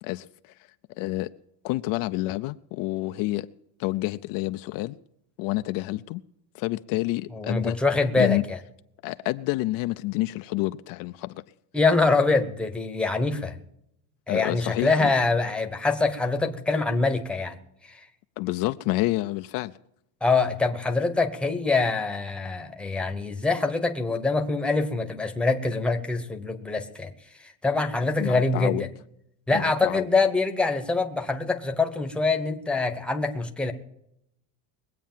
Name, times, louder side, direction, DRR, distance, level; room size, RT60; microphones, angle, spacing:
voice 1, 0.0-0.5 1.0-1.3 1.6-3.5 3.8-5.0 5.4-6.2 6.5-7.8 8.2-8.4 9.0-11.4 14.3-15.1 18.4-19.7 28.2-28.9 29.5-30.1, left 19 dB, 55° left, 0.6 m, -28 dB
voice 2, 7.3-8.6 11.7-13.6 14.3-17.6 17.8-18.0 20.2-27.1 27.4-28.9 29.5-33.7, left 3 dB, 5° left, 1.0 m, -24 dB
21.5 x 8.4 x 7.4 m
cardioid pair, 160°, 41 cm